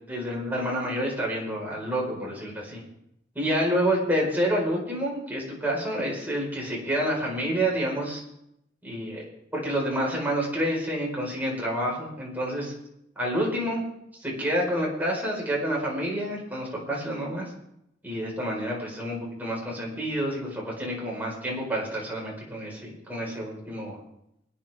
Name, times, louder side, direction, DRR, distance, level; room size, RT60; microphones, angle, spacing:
voice 1, 0.1-2.8 3.3-8.2 8.8-9.2 9.5-12.7 13.2-13.8 14.2-17.5 18.0-24.0, equal, 10° right, -3 dB, 4.9 m, -28 dB
25.5 x 9.5 x 3.6 m, 0.80 s
head